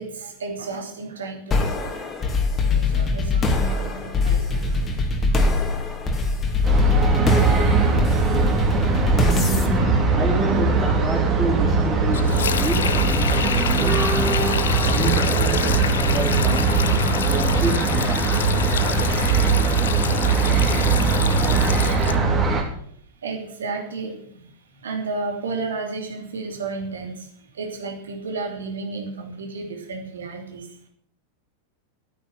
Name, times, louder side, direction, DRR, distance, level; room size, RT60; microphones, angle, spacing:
voice 1, 0.0-2.0 2.6-5.4 22.6-30.8, right 3 dB, 65° right, 3 dB, 3.0 m, -33 dB
sound 1, 1.5-10.9, left 3 dB, 20° left, 2.3 m, -23 dB
sound 2, 6.6-22.6, right 4 dB, 25° right, 3.3 m, -20 dB
voice 2, 8.9-16.8 17.3-18.6, right 2 dB, 10° right, -5 dB, 3.8 m, -29 dB
Sink (filling or washing), 12.1-22.2, left 8 dB, 65° left, 0.8 m, -28 dB
12.5 x 9.5 x 7.2 m, 0.63 s
figure-of-eight pair, 90°, 0 cm